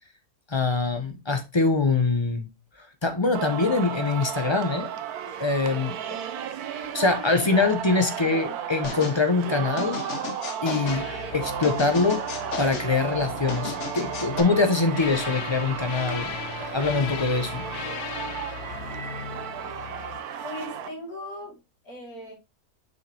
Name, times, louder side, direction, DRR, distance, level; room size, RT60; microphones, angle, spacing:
voice 1, 0.5-2.5 2.8-4.9 5.2-6.2 6.7-10.0 10.6-12.2 12.6-17.6, left 3 dB, 30° left, 0.5 m, -24 dB
Singing, 3.4-20.9, right 8 dB, 75° right, 1.2 m, -34 dB
voice 2, 8.2-8.6 20.4-22.3, left 1 dB, 70° left, 3.2 m, -39 dB
sound 1, 8.8-9.2 9.8-11.0 11.6-12.9 13.5-14.4, left 5 dB, 55° left, 1.1 m, -34 dB
sound 2, 10.8-20.2, left 9 dB, 90° left, 1.2 m, -38 dB
6.3 x 5.2 x 2.8 m
omnidirectional pair, 1.6 m